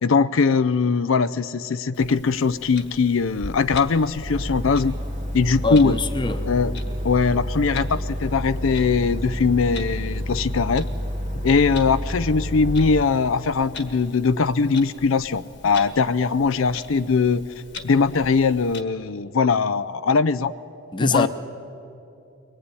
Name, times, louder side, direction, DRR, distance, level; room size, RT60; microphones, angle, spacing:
voice 1, 0.0-5.0 5.3-6.0 6.5-6.7 7.0-10.8 11.4-17.4 17.8-20.5 21.0-21.3, left 4 dB, 75° left, 0.5 m, -21 dB
Clock, 1.9-18.8, left 3 dB, 55° left, 1.5 m, -42 dB
sound 1, 4.2-13.0, equal, 35° right, 1.7 m, -29 dB
voice 2, 5.6-6.5 20.9-21.3, left 3 dB, 25° left, 0.9 m, -24 dB
24.0 x 19.5 x 9.8 m
head